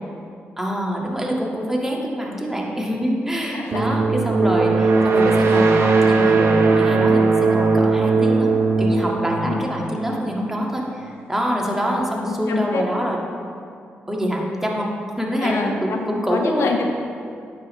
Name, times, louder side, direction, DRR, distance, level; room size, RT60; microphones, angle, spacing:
voice 1, 0.6-8.5 8.8-13.2 14.1-14.9 15.2-16.7, equal, 5° right, -2 dB, 1.8 m, -25 dB
voice 2, 3.5-4.0 9.4-9.7 11.7-12.8 15.4-16.9, left 4 dB, 70° left, 3 dB, 0.7 m, -27 dB
sound 1, 3.7-10.4, right 4 dB, 65° right, 1.0 m, -18 dB
9.4 x 7.2 x 3.2 m, 2.4 s
supercardioid pair, 45°, 5 cm